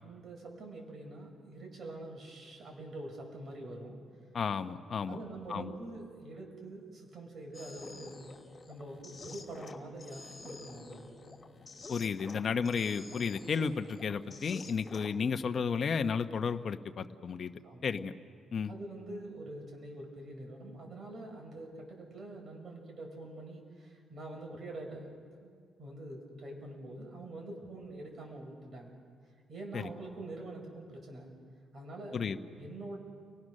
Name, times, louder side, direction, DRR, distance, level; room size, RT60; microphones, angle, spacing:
voice 1, 0.0-4.0 5.0-8.4 8.7-11.3 17.3-18.0 18.7-29.0 29.5-31.3 31.7-33.0, right 2 dB, 45° right, 1 dB, 6.4 m, -45 dB
voice 2, 4.3-5.2 5.5-5.7 11.9-17.5 17.8-18.1 18.5-18.7 29.7-29.8 32.1-32.4, left 6 dB, 50° left, 7 dB, 1.0 m, -33 dB
sound 1, 7.5-15.2, left 3 dB, 25° left, 2.7 m, -49 dB
30.0 x 19.0 x 6.5 m, 2.1 s
cardioid pair, 90°, 0 cm